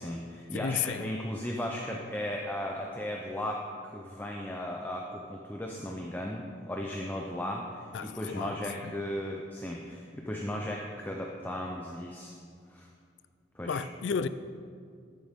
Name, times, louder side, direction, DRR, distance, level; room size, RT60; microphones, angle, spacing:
voice 1, 0.0-3.6 3.9-12.3 12.7-12.9 13.5-13.8, left 1 dB, 10° left, -1 dB, 0.6 m, -36 dB
voice 2, 0.5-1.1 7.9-8.5 8.8-8.9 13.7-14.3, left 6 dB, 80° left, 13 dB, 0.4 m, -32 dB
11.5 x 8.7 x 3.6 m, 2.2 s
head